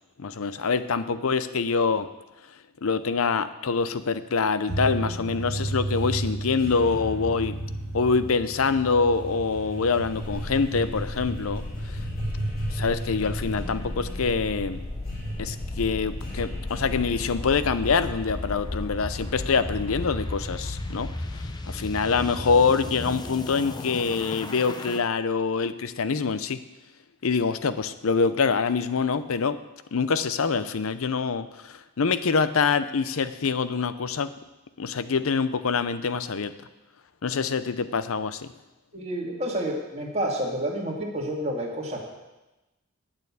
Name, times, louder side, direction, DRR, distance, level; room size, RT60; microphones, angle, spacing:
voice 1, 0.2-2.1 2.8-7.6 7.9-12.0 12.7-14.9 15.4-21.1 21.7-26.6 27.2-29.6 29.9-34.3 34.8-36.5 37.2-38.5, left 5 dB, 75° left, 13 dB, 0.6 m, -25 dB
sound 1, 4.7-21.5, right 1 dB, 45° left, 2.2 m, -34 dB
sound 2, 10.2-25.0, left 2 dB, 20° left, 0.5 m, -35 dB
voice 2, 38.9-42.0, right 1 dB, 30° right, -1 dB, 2.0 m, -29 dB
8.9 x 6.6 x 8.3 m, 1.0 s
head